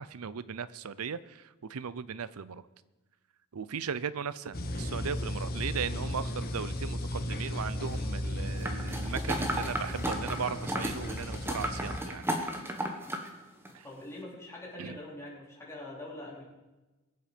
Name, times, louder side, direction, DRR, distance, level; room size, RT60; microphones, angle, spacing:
voice 1, 0.0-1.4 1.7-2.6 3.5-12.2 13.7-13.8 14.8-15.0, right 6 dB, 80° right, 17 dB, 0.6 m, -37 dB
sound 1, 4.5-12.0, left 1 dB, 45° left, 1.5 m, -35 dB
sound 2, 8.6-13.3 13.7-13.8, right 1 dB, 10° right, 1.5 m, -34 dB
voice 2, 13.8-16.4, left 1 dB, 15° left, -5 dB, 4.1 m, -43 dB
22.5 x 7.9 x 5.1 m, 1.1 s
head